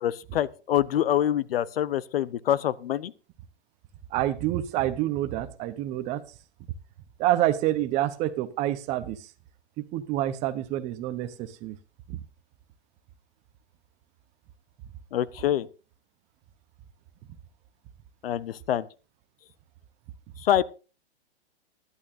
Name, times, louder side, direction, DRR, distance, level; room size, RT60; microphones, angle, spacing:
voice 1, 0.0-3.1 15.1-15.7 18.2-18.9 20.4-20.6, left 11 dB, 60° left, 0.8 m, -25 dB
voice 2, 4.1-6.2 7.2-9.3 9.8-11.8 12.1-12.2, right 13 dB, 20° right, 0.8 m, -27 dB
18.0 x 11.0 x 2.6 m
hypercardioid pair, 150°, 33 cm